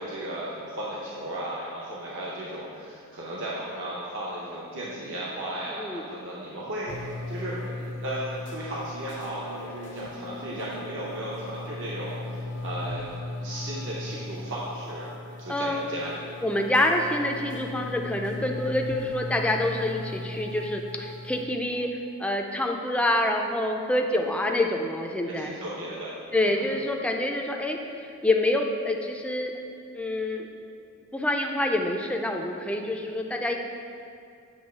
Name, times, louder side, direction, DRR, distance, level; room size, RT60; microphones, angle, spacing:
voice 1, 0.0-15.1 15.4-16.3 25.3-26.2 26.4-26.7, right 1 dB, 60° right, -6 dB, 0.8 m, -35 dB
voice 2, 5.7-6.0 15.5-15.8 16.4-21.9 22.2-25.5 26.3-29.5 29.9-30.5 31.1-33.6, left 1 dB, 5° left, 2 dB, 0.4 m, -27 dB
sound 1, 6.9-21.4, left 2 dB, 55° left, 0.6 m, -37 dB
7.9 x 3.1 x 5.4 m, 2.5 s
head